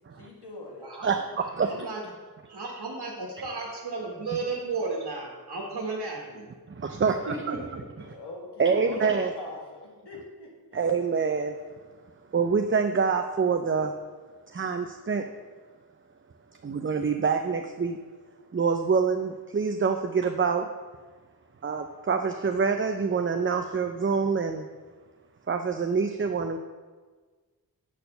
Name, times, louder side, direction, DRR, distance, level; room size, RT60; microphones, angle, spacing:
voice 1, 0.2-0.9 1.6-1.8 7.0-7.7 8.0-10.8, left 2 dB, 90° left, -2 dB, 1.8 m, -42 dB
voice 2, 1.6-2.0 2.5-6.5 6.9-7.0 7.3-8.1, right 3 dB, 70° right, -2 dB, 1.5 m, -34 dB
voice 3, 6.7-7.6 8.6-9.3 10.7-11.6 12.3-13.9 14.5-15.2 16.6-18.0 18.5-20.7 21.6-24.7 25.5-26.6, right 5 dB, 30° right, 5 dB, 0.5 m, -26 dB
8.6 x 4.2 x 6.7 m, 1.4 s
wide cardioid pair, 65°, 39 cm